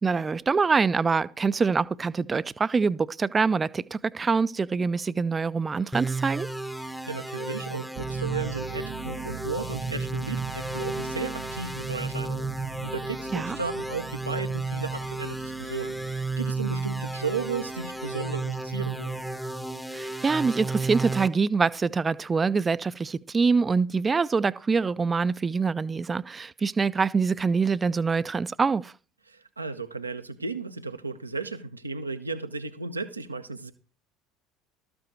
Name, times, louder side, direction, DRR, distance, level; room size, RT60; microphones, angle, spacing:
voice 1, 0.0-6.5 13.3-13.6 19.9-28.9, right 4 dB, 25° right, 0.5 m, -25 dB
sound 1, 5.9-21.3, right 3 dB, 5° left, 0.9 m, -33 dB
voice 2, 6.8-12.5 12.8-19.2 29.3-33.7, right 4 dB, 85° right, 0.8 m, -35 dB
sound 2, 7.9-19.4, right 11 dB, 55° right, 1.2 m, -43 dB
13.5 x 7.8 x 4.6 m
figure-of-eight pair, 65°, 0 cm